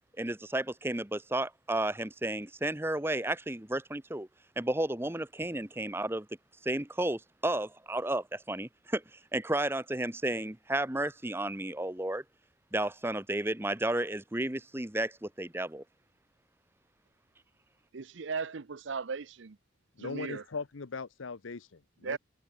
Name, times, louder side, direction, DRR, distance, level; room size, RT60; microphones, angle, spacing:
voice 1, 0.2-4.3 4.6-6.3 6.6-12.2 12.7-15.8, right 1 dB, 10° right, 0.9 m, -32 dB
voice 2, 17.9-19.6 20.0-20.4 22.0-22.2, right 5 dB, 70° right, 0.6 m, -37 dB
voice 3, 20.0-22.2, left 4 dB, 80° left, 0.8 m, -39 dB
head